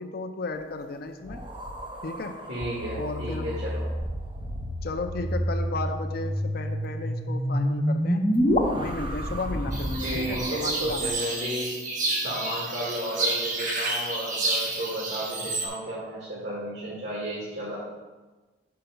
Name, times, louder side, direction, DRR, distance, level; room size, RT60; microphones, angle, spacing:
voice 1, 0.0-1.4 2.0-2.4 2.9-3.5 4.8-8.2 8.8-11.2, left 3 dB, 60° left, 6 dB, 0.5 m, -34 dB
sound 1, 1.2-6.0 8.3-11.1, equal, 30° right, 0.8 m, -37 dB
voice 2, 2.5-3.8 10.0-11.7 12.1-17.8, right 1 dB, 80° right, -6 dB, 1.7 m, -33 dB
sound 2, 2.6-8.6, equal, 40° left, 1.3 m, -28 dB
sound 3, 9.7-15.7, right 2 dB, 45° right, 1.3 m, -30 dB
5.8 x 5.7 x 5.3 m, 1.2 s
head